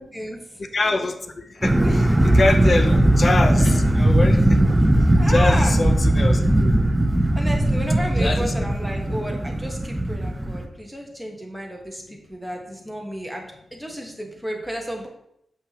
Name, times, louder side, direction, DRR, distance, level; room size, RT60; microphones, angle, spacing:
voice 1, 0.0-0.4 1.8-1.9 3.6-3.7 5.2-5.7 7.3-13.4 13.7-15.1, equal, ahead, 0 dB, 1.3 m, -32 dB
voice 2, 0.6-4.6 5.3-6.7 8.2-8.5, left 3 dB, 45° left, 8 dB, 0.6 m, -25 dB
sound 1, 1.6-10.6, right 1 dB, 15° right, 0.8 m, -18 dB
6.6 x 5.5 x 2.9 m, 0.76 s
wide cardioid pair, 90°, 0 cm